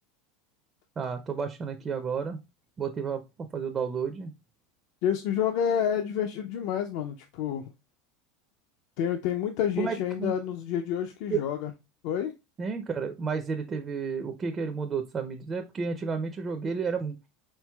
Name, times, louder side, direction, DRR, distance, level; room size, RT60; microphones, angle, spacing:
voice 1, 1.0-2.4 2.8-3.2 3.5-4.3 9.8-10.3 11.3-11.4 12.6-17.2, right 5 dB, 20° right, 6 dB, 0.4 m, -31 dB
voice 2, 5.0-7.7 9.0-11.7 12.0-12.3, left 9 dB, 55° left, 6 dB, 0.4 m, -29 dB
4.4 x 3.9 x 2.2 m, 0.25 s
supercardioid pair, 160°, 0 cm